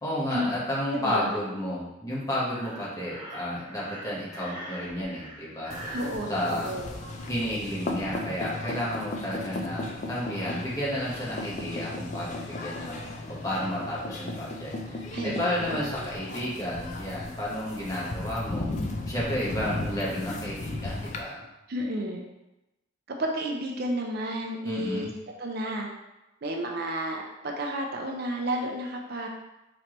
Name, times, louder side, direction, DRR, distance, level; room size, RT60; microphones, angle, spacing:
voice 1, 0.0-5.8 6.3-6.7 7.3-13.0 13.3-18.7 19.1-21.4 24.6-25.1, left 1 dB, 15° left, -7 dB, 1.1 m, -32 dB
voice 2, 0.9-1.3 5.9-6.9 15.1-16.1 21.7-22.3 23.2-25.1 25.4-25.9 26.4-29.3, right 1 dB, 50° right, 1 dB, 0.5 m, -32 dB
Breathing, 2.4-6.2, right 1 dB, 20° right, 1.2 m, -42 dB
sound 1, 5.7-21.2, left 2 dB, 35° left, 0.4 m, -36 dB
4.4 x 3.1 x 3.0 m, 0.98 s
head